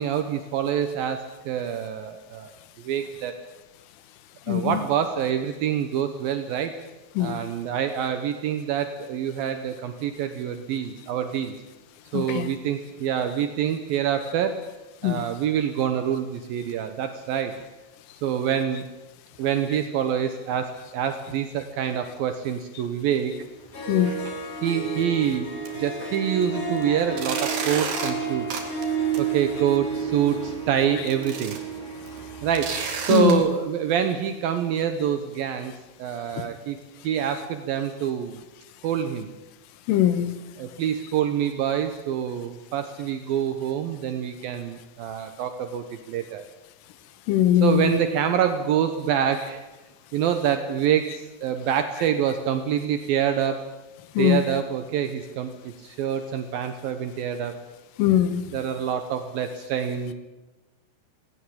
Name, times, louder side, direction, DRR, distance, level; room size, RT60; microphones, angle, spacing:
voice 1, 0.0-2.5 2.8-3.4 4.5-6.8 7.2-11.6 12.1-14.7 15.0-17.6 18.2-18.8 19.4-23.4 24.6-25.5 25.8-28.5 29.2-31.6 32.4-35.7 36.0-36.8 37.0-38.4 38.8-39.3 40.6-46.4 47.6-49.6 50.1-53.7 54.2-57.6 58.5-60.1, right 9 dB, 90° right, 8 dB, 2.0 m, -26 dB
voice 2, 4.5-4.8 7.2-7.4 12.1-12.5 15.0-15.2 23.9-24.1 33.1-33.4 39.9-40.3 47.3-48.0 54.2-54.4 58.0-58.4, left 11 dB, 80° left, 13 dB, 3.6 m, -21 dB
Harp, 23.4-23.5 23.7-33.2, right 5 dB, 30° left, 3.9 m, -31 dB
sound 1, 23.9-24.3 24.6-24.7 25.2-25.3 25.6-33.3, right 5 dB, 50° right, 3.5 m, -35 dB
18.5 x 17.5 x 8.7 m, 1.1 s
omnidirectional pair, 5.7 m